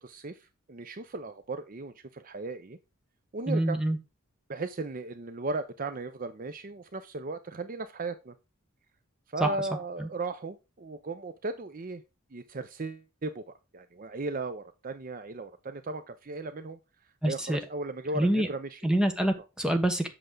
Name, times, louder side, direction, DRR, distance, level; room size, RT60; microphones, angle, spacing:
voice 1, 0.0-2.8 3.3-3.8 4.5-8.3 9.3-12.0 12.3-13.4 13.7-16.8 17.2-18.8, right 3 dB, 40° right, 11 dB, 0.6 m, -36 dB
voice 2, 3.5-4.0 9.4-9.5 10.0-10.1 17.2-17.6 18.1-18.5 18.8-20.1, right 1 dB, 5° right, 5 dB, 1.1 m, -26 dB
7.9 x 6.3 x 3.8 m, 0.27 s
head